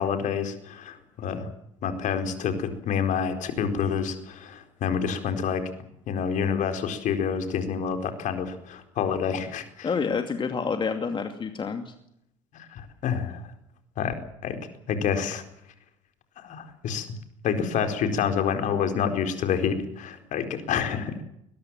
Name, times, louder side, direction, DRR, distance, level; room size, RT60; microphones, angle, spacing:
voice 1, 0.0-1.5 1.8-5.6 6.1-9.9 12.5-13.4 14.0-14.1 14.4-14.6 14.9-15.4 16.4-17.1 17.4-21.2, left 7 dB, 50° left, 8 dB, 4.5 m, -28 dB
voice 2, 9.8-11.9, left 5 dB, 30° left, 7 dB, 2.6 m, -28 dB
21.5 x 21.0 x 7.5 m, 0.76 s
hypercardioid pair, 70°, 16 cm